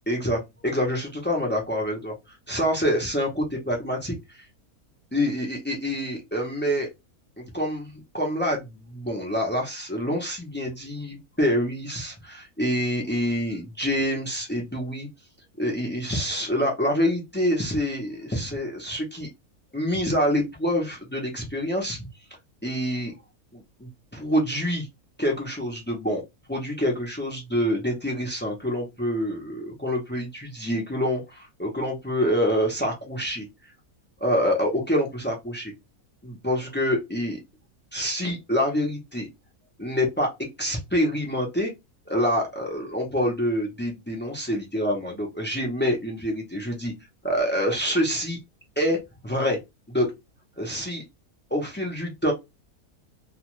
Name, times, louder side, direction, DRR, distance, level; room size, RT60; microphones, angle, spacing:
voice 1, 0.1-4.5 5.1-6.9 7.4-15.1 15.6-19.3 19.7-22.1 22.6-23.1 23.5-24.9 25.2-26.2 26.5-33.5 34.2-35.7 36.2-37.4 37.9-39.3 39.8-40.3 40.6-41.7 42.1-46.9 47.2-48.4 48.8-49.0 49.2-49.6 49.9-50.1 50.6-51.0 51.5-52.3, equal, 20° left, 0.3 m, -26 dB
2.4 x 2.3 x 3.0 m
omnidirectional pair, 1.6 m